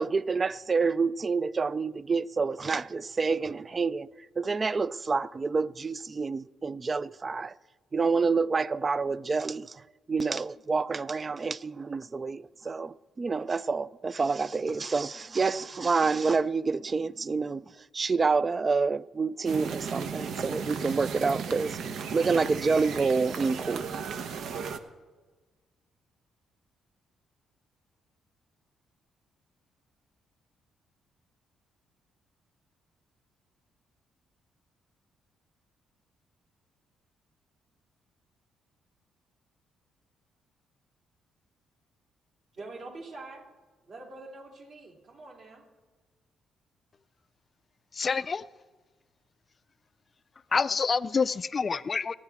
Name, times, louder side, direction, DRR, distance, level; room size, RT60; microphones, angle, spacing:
voice 1, 0.0-4.1 4.4-7.5 7.9-9.8 10.1-17.6 17.9-21.8 22.1-23.9, right 4 dB, 30° right, 0.3 m, -28 dB
sound 1, 19.5-24.8, right 6 dB, 75° right, 0.8 m, -35 dB
voice 2, 42.5-43.4 43.9-45.6, right 2 dB, 55° right, 3.3 m, -44 dB
voice 3, 47.9-48.5 50.5-52.2, left 5 dB, 35° left, 0.4 m, -27 dB
26.5 x 9.8 x 3.6 m
cardioid pair, 90°, 0 cm